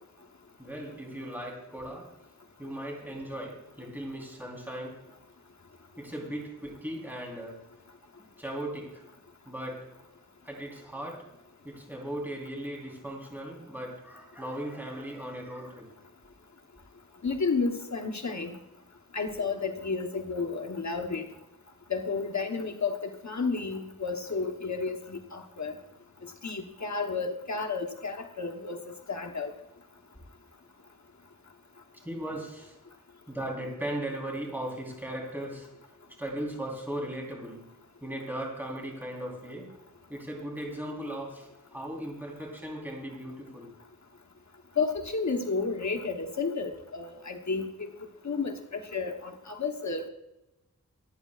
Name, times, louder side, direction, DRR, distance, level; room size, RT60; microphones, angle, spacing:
voice 1, 0.6-2.1 2.6-5.0 6.0-7.6 8.4-9.0 9.5-9.9 10.4-11.2 11.6-15.9 31.9-32.8 33.3-35.7 36.2-37.7 38.0-39.7 40.1-43.7, right 1 dB, 5° right, -2 dB, 3.7 m, -37 dB
voice 2, 17.2-18.5 19.1-21.2 21.9-25.7 26.2-28.8 29.1-29.5 44.8-47.9 48.2-50.1, left 4 dB, 60° left, 3 dB, 1.1 m, -32 dB
27.0 x 9.3 x 2.4 m, 0.94 s
wide cardioid pair, 70°, 32 cm